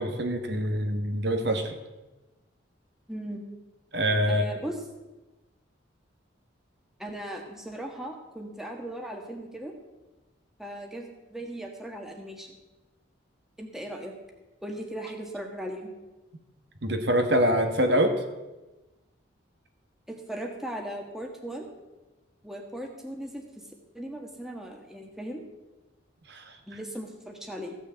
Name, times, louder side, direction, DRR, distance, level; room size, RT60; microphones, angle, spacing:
voice 1, 0.0-1.8 3.9-4.4 16.8-18.1 26.3-26.4, equal, 55° right, 6 dB, 1.5 m, -25 dB
voice 2, 3.1-3.4 4.3-4.8 7.0-9.7 10.6-12.6 13.6-14.1 14.6-15.9 20.1-21.7 22.4-23.7 23.9-25.4 26.6-27.8, right 1 dB, ahead, 2 dB, 1.6 m, -38 dB
15.5 x 6.6 x 8.0 m, 1.1 s
head